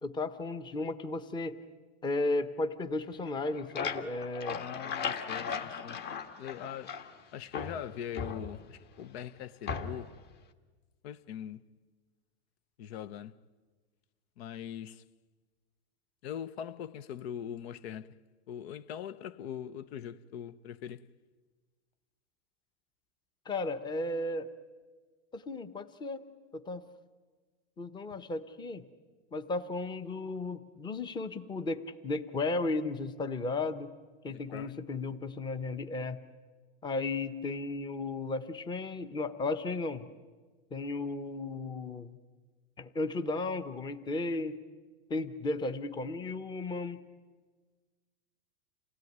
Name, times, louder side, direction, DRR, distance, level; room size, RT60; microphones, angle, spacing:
voice 1, 0.0-1.6 2.0-4.6 23.5-24.5 25.3-26.2 26.5-26.8 27.8-28.8 29.3-33.9 34.2-36.2 36.8-40.1 40.7-42.2 42.8-44.6 45.1-47.0, left 2 dB, 15° left, 0.9 m, -34 dB
sound 1, 3.3-7.2 7.5-8.9 9.7-10.2, left 6 dB, 30° left, 1.6 m, -37 dB
voice 2, 4.6-6.0 6.4-7.0 7.3-10.1 11.0-11.6 12.8-13.4 14.4-15.0 16.2-18.2 18.5-21.1 34.3-34.8, left 9 dB, 65° left, 0.9 m, -42 dB
28.0 x 17.0 x 9.4 m
supercardioid pair, 140°, 34 cm